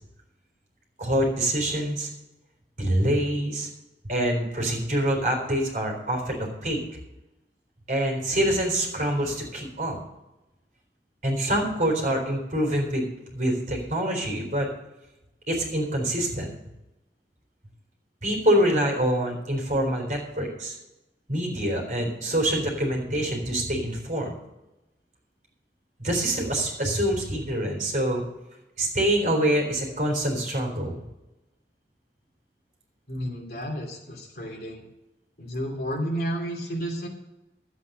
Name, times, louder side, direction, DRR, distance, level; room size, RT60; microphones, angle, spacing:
voice 1, 1.0-2.1 2.8-3.7 4.0-6.8 7.9-10.0 11.2-14.7 15.5-16.5 18.2-20.8 21.3-24.3 26.0-28.2 28.8-30.9, right 1 dB, 45° right, 0 dB, 3.8 m, -25 dB
voice 2, 33.1-34.9 35.4-37.1, equal, 55° left, 0 dB, 3.0 m, -31 dB
12.5 x 8.3 x 6.6 m, 0.97 s
head